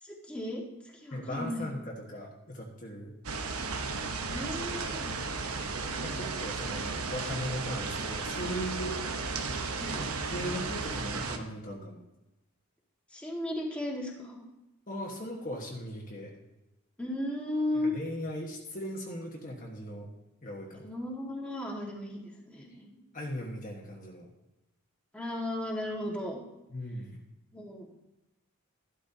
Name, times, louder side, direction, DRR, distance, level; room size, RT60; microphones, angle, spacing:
voice 1, 0.0-1.7 4.2-5.2 9.8-10.1 13.1-14.4 17.0-17.9 20.8-23.0 25.1-26.4 27.5-27.9, left 1 dB, 5° left, -3 dB, 1.8 m, -35 dB
voice 2, 1.1-3.1 6.0-8.9 10.0-12.0 14.9-16.3 17.8-20.1 20.4-20.9 23.1-24.3 26.7-27.2, equal, 40° left, -1 dB, 1.4 m, -38 dB
sound 1, 3.2-11.4, right 4 dB, 80° right, 1.0 m, -34 dB
13.5 x 12.0 x 2.8 m, 0.97 s
head